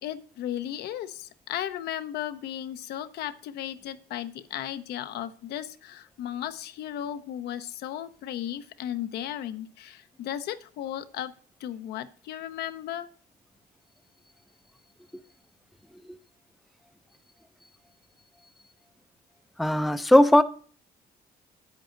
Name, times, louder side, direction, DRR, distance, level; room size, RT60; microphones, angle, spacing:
voice 1, 0.0-11.3 11.6-13.1, left 11 dB, 70° left, 11 dB, 0.7 m, -35 dB
voice 2, 19.6-20.4, left 1 dB, ahead, 11 dB, 0.4 m, -18 dB
8.8 x 8.2 x 3.8 m, 0.43 s
cardioid pair, 110°, 17 cm